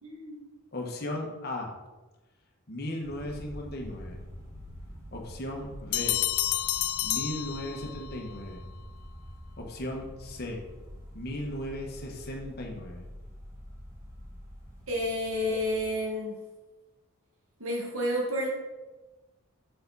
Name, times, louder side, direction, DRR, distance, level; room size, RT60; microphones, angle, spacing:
voice 1, 0.0-0.4 14.9-16.4 17.6-18.5, left 1 dB, 70° right, -2 dB, 1.7 m, -30 dB
voice 2, 0.7-1.7 2.7-4.2 5.1-6.2 7.0-8.6 9.6-10.6 11.1-13.0, left 1 dB, 45° left, 0 dB, 1.3 m, -36 dB
sound 1, 3.0-15.8, equal, 15° right, 1.5 m, -46 dB
sound 2, 5.9-8.2, left 15 dB, 85° left, 0.4 m, -29 dB
6.9 x 6.7 x 4.1 m, 1.2 s
head